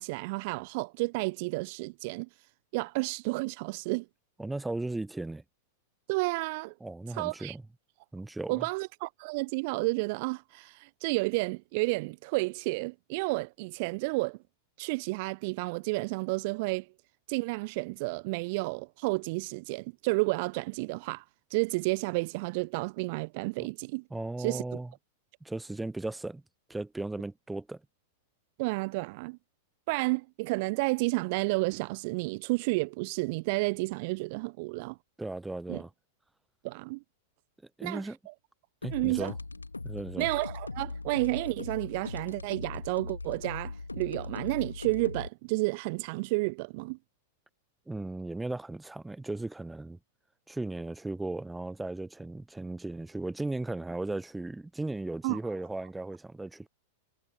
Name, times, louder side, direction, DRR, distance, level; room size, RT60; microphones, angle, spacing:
voice 1, 0.0-2.3 2.7-4.1 6.1-6.7 7.1-7.6 8.5-14.4 14.8-16.9 17.3-21.2 21.5-24.0 24.4-24.6 28.6-29.4 29.9-35.0 35.7-35.8 36.6-37.0 37.8-38.3 38.9-39.3 40.2-47.0 55.2-55.4, right 27 dB, 45° right, 0.5 m, -31 dB
voice 2, 4.4-5.4 6.8-7.6 8.1-8.7 23.6-23.7 24.1-24.9 25.4-26.4 26.7-27.8 35.2-35.9 37.8-38.2 38.8-39.3 39.8-40.3 47.9-50.0 50.5-56.7, right 2 dB, 5° right, 0.7 m, -36 dB
sound 1, 38.8-45.3, left 3 dB, 80° left, 2.1 m, -39 dB
figure-of-eight pair, 95°, 0 cm